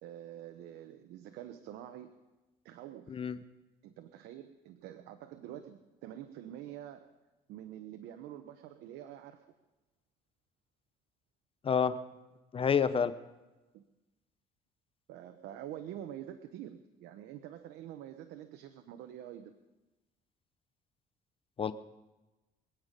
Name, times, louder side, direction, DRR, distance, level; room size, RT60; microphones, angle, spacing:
voice 1, 0.0-2.2 2.6-3.2 3.8-7.1 7.5-9.5 13.7-13.8 15.1-19.5, right 11 dB, 85° right, 8 dB, 1.0 m, -46 dB
voice 2, 12.5-13.1 21.6-21.7, left 6 dB, 35° left, 13 dB, 0.8 m, -28 dB
24.5 x 9.0 x 5.3 m, 1.1 s
cardioid pair, 110°, 17 cm